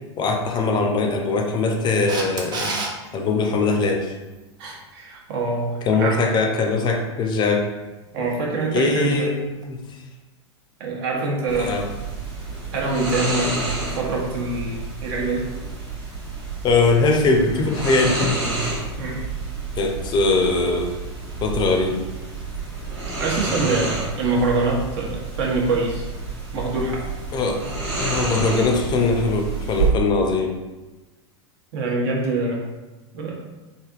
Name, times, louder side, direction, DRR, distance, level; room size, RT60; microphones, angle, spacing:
voice 1, 0.2-2.8 3.1-4.1 5.8-7.7 8.1-8.3 8.7-9.8 11.6-11.9 16.6-18.3 19.8-21.0 21.4-22.0 27.3-27.6 28.1-30.6, left 3 dB, 30° left, 2 dB, 0.5 m, -21 dB
Camera, 2.1-2.9 9.6-9.7, right 3 dB, 30° right, 0.5 m, -27 dB
voice 2, 4.6-6.2 8.1-9.3 10.8-11.8 12.7-15.5 19.0-19.3 23.2-26.1 26.5-27.1 31.7-32.6 33.1-33.3, right 3 dB, 65° right, -1 dB, 0.8 m, -25 dB
sound 1, 11.5-29.9, right 2 dB, 80° right, 1.2 m, -29 dB
3.3 x 2.6 x 2.4 m, 1.1 s
hypercardioid pair, 105°, 15 cm